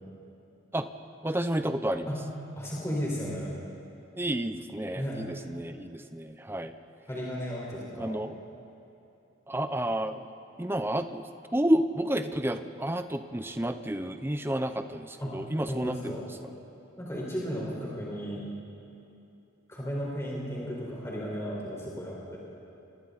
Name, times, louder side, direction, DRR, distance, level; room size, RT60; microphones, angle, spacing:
voice 1, 1.2-2.1 4.2-6.7 8.0-8.3 9.5-10.2 10.6-16.1, right 1 dB, 10° right, 9 dB, 0.7 m, -30 dB
voice 2, 2.6-3.5 4.9-5.2 7.1-8.1 15.2-15.3 15.7-16.2 17.0-18.5 19.7-22.4, equal, 15° left, -5 dB, 4.7 m, -34 dB
30.0 x 26.5 x 4.2 m, 2.8 s
head